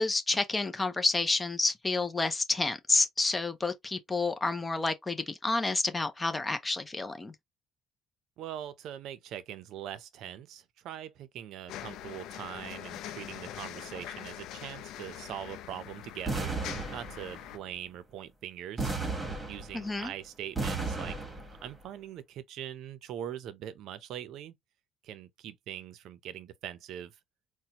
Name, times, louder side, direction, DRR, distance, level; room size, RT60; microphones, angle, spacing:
voice 1, 0.0-7.3 19.7-20.1, left 3 dB, 15° left, 0.6 m, -29 dB
voice 2, 8.4-16.5 16.9-18.9 19.5-21.2 21.6-24.5 25.0-27.1, right 10 dB, 70° right, 0.6 m, -42 dB
sound 1, 11.7-17.6, left 11 dB, 75° left, 0.5 m, -43 dB
sound 2, 16.3-17.5 18.8-20.0 20.6-21.7, right 3 dB, 15° right, 1.2 m, -34 dB
4.2 x 2.2 x 2.9 m
cardioid pair, 120°, 0 cm